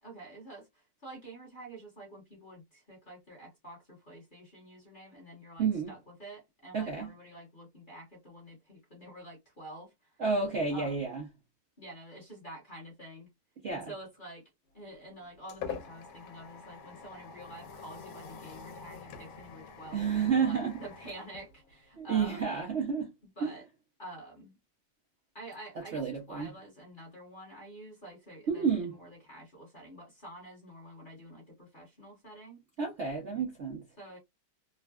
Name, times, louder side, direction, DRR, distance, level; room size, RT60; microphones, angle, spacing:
voice 1, 0.0-10.2 10.7-11.0 11.8-13.3 13.7-22.5 23.4-23.6 24.0-24.5 25.3-32.6 34.0-34.2, right 1 dB, 35° left, 0.8 m, -48 dB
voice 2, 5.6-5.9 6.7-7.1 10.2-11.2 13.6-13.9 19.9-20.7 22.0-23.1 23.4-23.5 25.9-26.5 28.5-28.9 32.8-33.8, right 6 dB, 90° right, 0.6 m, -30 dB
sound 1, 14.8-22.2, left 6 dB, 80° left, 1.5 m, -46 dB
3.7 x 2.1 x 2.2 m
omnidirectional pair, 2.2 m